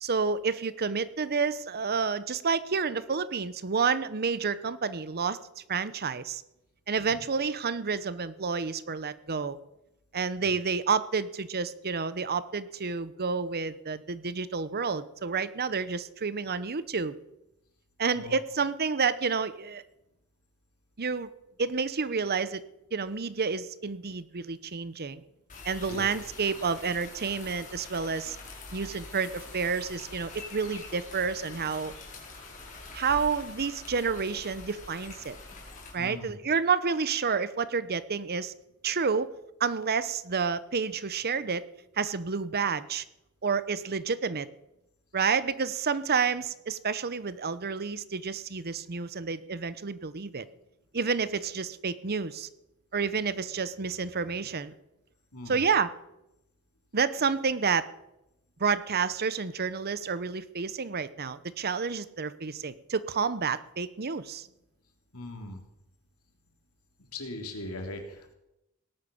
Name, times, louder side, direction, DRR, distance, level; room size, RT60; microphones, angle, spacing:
voice 1, 0.0-5.4 5.7-6.4 6.9-9.6 10.1-17.1 18.0-19.8 21.0-21.3 21.6-22.6 22.9-25.2 25.6-28.4 28.7-31.9 32.9-35.4 35.9-38.5 38.8-39.3 39.6-41.6 42.0-43.0 43.4-44.5 45.1-50.4 50.9-52.5 52.9-54.7 55.5-55.9 56.9-57.9 58.6-64.5, right 5 dB, 45° right, 15 dB, 0.9 m, -29 dB
sound 1, 25.5-35.9, left 3 dB, 35° left, 4.9 m, -45 dB
voice 2, 36.0-36.3 55.3-55.6 65.1-65.6 67.1-68.3, left 2 dB, 80° left, 4 dB, 3.2 m, -40 dB
17.5 x 11.0 x 7.0 m, 0.89 s
head